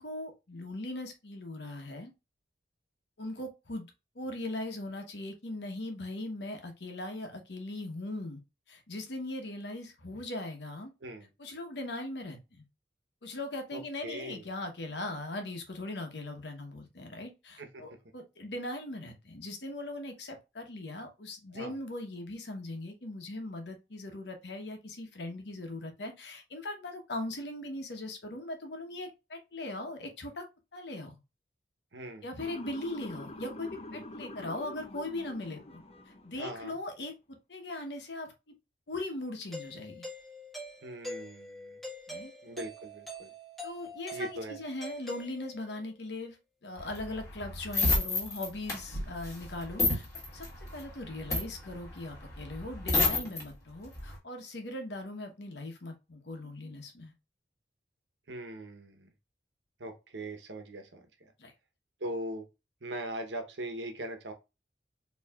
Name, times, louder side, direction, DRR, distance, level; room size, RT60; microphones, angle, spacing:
voice 1, 0.0-2.1 3.2-3.9 4.1-8.4 8.7-10.9 11.4-12.7 13.2-30.4 30.7-31.2 32.2-37.1 37.5-38.3 38.9-40.1 42.1-42.3 43.6-46.4 46.6-50.1 50.3-50.5 50.7-57.1 61.4-61.5, left 2 dB, 75° left, 1.1 m, -39 dB
voice 2, 13.7-14.4 17.6-17.8 21.5-21.7 31.9-32.3 36.4-36.8 40.8-41.8 42.4-43.3 44.1-44.6 58.3-59.1 59.8-61.1 62.0-62.5 62.8-64.3, right 1 dB, 85° right, 1.0 m, -40 dB
Motor vehicle (road) / Siren, 32.4-36.5, left 2 dB, 35° left, 0.6 m, -45 dB
Doorbell, 39.5-45.8, equal, ahead, 1.3 m, -44 dB
sound 1, 46.8-53.4 53.8-54.2, left 2 dB, 15° left, 1.6 m, -30 dB
4.5 x 3.0 x 2.4 m
head